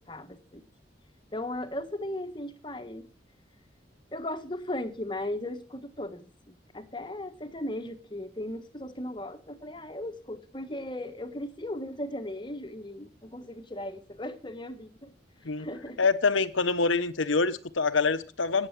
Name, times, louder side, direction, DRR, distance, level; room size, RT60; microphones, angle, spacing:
voice 1, 0.1-0.6 1.3-3.1 4.1-15.1 15.6-16.0, left 1 dB, 25° left, 1.5 m, -37 dB
voice 2, 16.0-18.7, left 4 dB, 90° left, 1.2 m, -25 dB
17.5 x 8.0 x 7.5 m
head